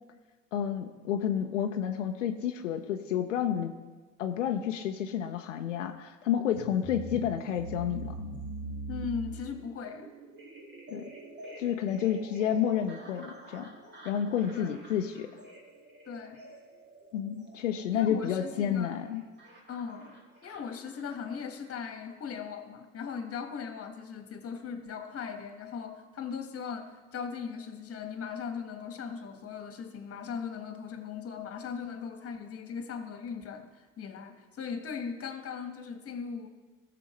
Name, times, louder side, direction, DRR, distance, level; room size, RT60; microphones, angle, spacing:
voice 1, 0.5-3.7 4.2-8.2 10.9-11.1 11.6-13.7 14.0-15.3 17.1-19.2, left 9 dB, 90° left, 5 dB, 0.6 m, -30 dB
sound 1, 6.5-21.7, right 2 dB, 30° right, 2.2 m, -45 dB
voice 2, 8.9-10.1 14.5-14.7 16.0-16.4 17.9-19.0 19.7-20.2 20.4-36.5, left 6 dB, 40° left, 6 dB, 1.6 m, -39 dB
17.0 x 6.8 x 3.2 m, 1.3 s
hypercardioid pair, 70°, 36 cm